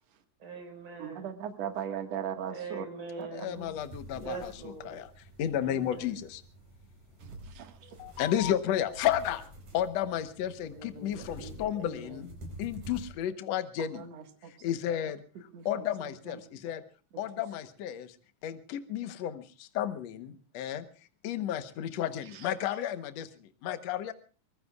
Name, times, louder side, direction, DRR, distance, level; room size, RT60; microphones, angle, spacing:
voice 1, 0.4-1.3 2.5-3.7 4.1-5.0 5.6-6.2 10.6-12.2, right 4 dB, 45° right, 2 dB, 5.6 m, -43 dB
voice 2, 1.0-2.8 3.2-3.3 7.5-7.8 13.8-14.5 15.5-15.8 16.3-16.4, right 8 dB, 65° right, 7 dB, 2.7 m, -38 dB
voice 3, 3.3-4.5 4.9-5.1 5.4-6.4 7.8-9.4 9.7-12.3 12.6-14.1 14.5-15.2 15.7-16.8 17.2-18.2 18.4-20.9 21.2-24.1, left 10 dB, 70° left, 10 dB, 2.2 m, -32 dB
sound 1, 3.5-13.1, right 1 dB, 80° right, 6.0 m, -49 dB
24.5 x 20.5 x 2.4 m, 0.36 s
omnidirectional pair, 3.3 m